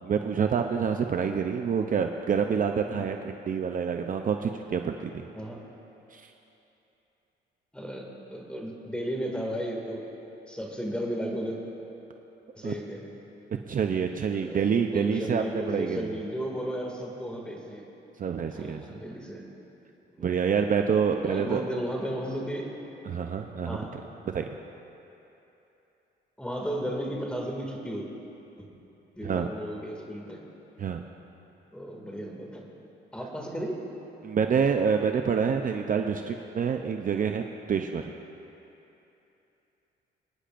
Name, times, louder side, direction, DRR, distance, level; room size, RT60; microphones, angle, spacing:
voice 1, 0.0-5.3 6.1-6.3 12.6-12.7 13.7-16.1 18.2-18.8 20.2-21.6 23.1-23.8 24.3-24.5 29.2-29.5 30.8-31.0 34.2-37.4 37.7-38.1, right 6 dB, 45° right, 5 dB, 0.6 m, -27 dB
voice 2, 7.7-10.0 10.5-11.6 12.5-13.1 14.4-17.8 18.5-19.4 20.1-20.2 21.2-22.7 23.6-24.0 26.4-28.1 28.6-28.7 29.2-30.4 31.7-32.6 33.1-33.9, equal, 5° left, -1 dB, 2.2 m, -34 dB
28.5 x 10.0 x 2.6 m, 3.0 s
cardioid pair, 90°, 20 cm